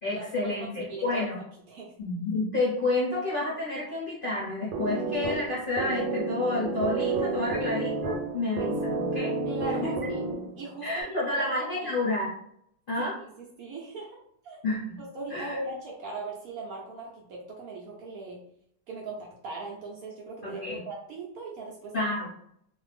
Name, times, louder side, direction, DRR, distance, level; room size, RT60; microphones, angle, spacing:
voice 1, 0.0-1.4 2.0-9.4 9.8-9.9 10.8-12.3 12.9-13.2 14.6-15.0 15.3-15.6 20.4-20.8 21.9-22.3, left 2 dB, 50° left, -7 dB, 0.6 m, -30 dB
voice 2, 0.6-1.9 9.4-10.3 10.6-12.0 13.0-13.3 13.6-14.2 14.4-14.6 15.0-18.4 18.9-21.9, right 2 dB, 70° right, -2 dB, 0.9 m, -39 dB
sound 1, 4.7-10.7, right 3 dB, 85° right, 1.3 m, -30 dB
2.6 x 2.5 x 3.3 m, 0.70 s
omnidirectional pair, 1.9 m